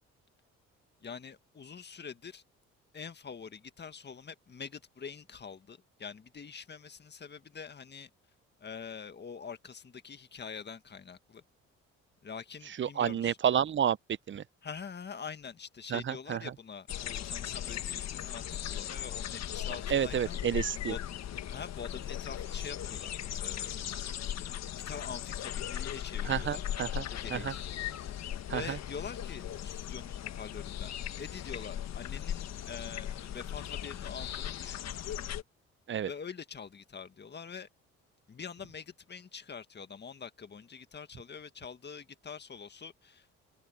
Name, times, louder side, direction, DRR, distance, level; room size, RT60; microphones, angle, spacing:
voice 1, 1.0-2.4 2.9-8.1 8.6-11.4 12.2-13.4 14.6-20.4 20.9-21.0 21.5-23.8 24.3-24.4 24.7-26.6 27.1-27.7 28.0-34.9 36.1-37.7 38.3-43.3, left 6 dB, 35° left, 1.8 m, -45 dB
voice 2, 12.8-14.0 14.3-14.4 15.9-16.4 19.9-20.9 26.2-27.0 27.3-27.5 28.5-28.8 35.9-36.1, right 9 dB, 40° right, 0.7 m, -30 dB
sound 1, 16.9-35.4, left 10 dB, 65° left, 1.6 m, -38 dB
supercardioid pair, 70°, 29 cm